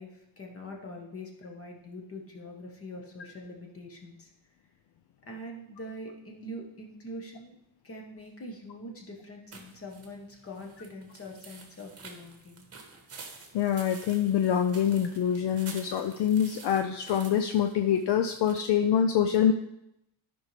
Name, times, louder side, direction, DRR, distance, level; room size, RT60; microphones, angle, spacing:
voice 1, 0.0-4.3 5.2-7.5 7.8-12.7, left 1 dB, 30° left, 1 dB, 1.2 m, -43 dB
sound 1, 9.5-18.6, right 4 dB, 30° right, 1.1 m, -49 dB
voice 2, 13.5-19.5, left 9 dB, 55° left, 6 dB, 0.5 m, -25 dB
13.0 x 5.3 x 3.3 m, 0.84 s
cardioid pair, 175°, 49 cm